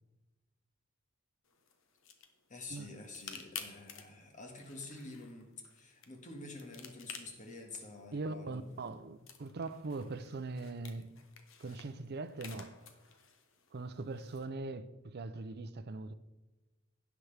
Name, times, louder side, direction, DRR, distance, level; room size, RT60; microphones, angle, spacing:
sound 1, 1.4-14.5, left 7 dB, 65° left, 1.1 m, -53 dB
voice 1, 2.5-8.6, left 2 dB, 40° left, 1.8 m, -48 dB
voice 2, 8.1-11.1 11.6-12.8 13.7-16.1, right 3 dB, 50° right, 0.6 m, -41 dB
16.5 x 6.0 x 3.4 m
head